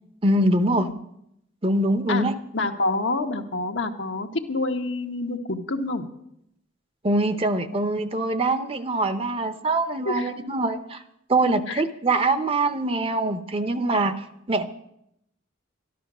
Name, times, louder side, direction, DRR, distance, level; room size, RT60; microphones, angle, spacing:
voice 1, 0.2-0.9 1.6-2.3 7.0-11.0 11.3-14.2 14.5-14.7, right 2 dB, 30° right, 10 dB, 0.8 m, -23 dB
voice 2, 2.5-6.1 10.0-10.3 11.7-11.8, left 2 dB, 75° left, 5 dB, 1.3 m, -27 dB
13.0 x 12.0 x 6.1 m, 0.78 s
head